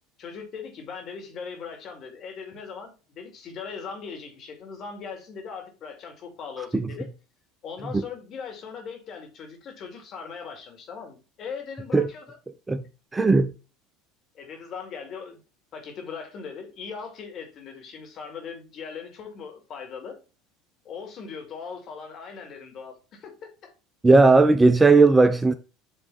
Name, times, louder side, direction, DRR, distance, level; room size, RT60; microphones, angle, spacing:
voice 1, 0.2-7.1 7.6-12.4 14.3-15.4 15.7-20.2 20.8-23.7, left 6 dB, 45° left, 2.4 m, -39 dB
voice 2, 13.1-13.5 24.0-25.5, right 3 dB, 15° right, 0.6 m, -16 dB
8.0 x 3.6 x 4.0 m
hypercardioid pair, 80°, 0 cm